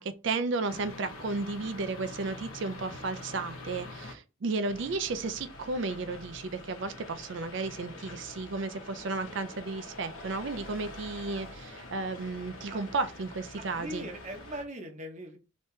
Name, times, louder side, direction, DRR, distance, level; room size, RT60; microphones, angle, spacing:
voice 1, 0.0-14.1, right 3 dB, 60° right, 0.4 m, -33 dB
sound 1, 0.7-4.1 4.7-14.6, left 2 dB, 85° left, 0.9 m, -45 dB
voice 2, 13.6-15.4, equal, 35° right, 0.8 m, -40 dB
3.2 x 2.9 x 3.2 m
head